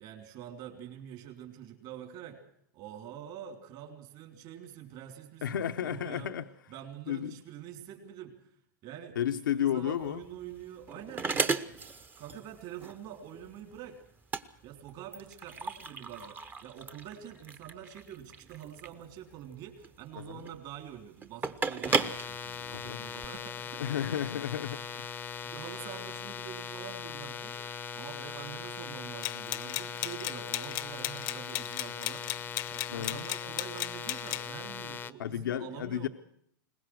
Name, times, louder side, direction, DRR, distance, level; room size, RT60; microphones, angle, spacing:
voice 1, 0.0-2.4 2.7-6.3 6.7-8.3 8.8-11.9 12.2-14.0 14.6-23.8 24.4-24.6 25.4-27.6 27.9-32.3 32.7-36.1, right 10 dB, 45° right, 5 dB, 3.8 m, -46 dB
voice 2, 5.4-6.4 7.1-7.3 9.2-10.2 20.2-20.4 22.7-23.0 23.8-25.1 32.9-33.3 35.2-36.1, left 10 dB, 90° left, 6 dB, 0.8 m, -32 dB
sound 1, 10.0-23.3, right 4 dB, 20° right, 0.9 m, -36 dB
sound 2, 21.9-35.1, left 7 dB, 15° left, 0.7 m, -40 dB
sound 3, 29.2-34.5, left 20 dB, 50° left, 0.8 m, -36 dB
22.0 x 20.0 x 6.4 m, 0.67 s
hypercardioid pair, 125°, 11 cm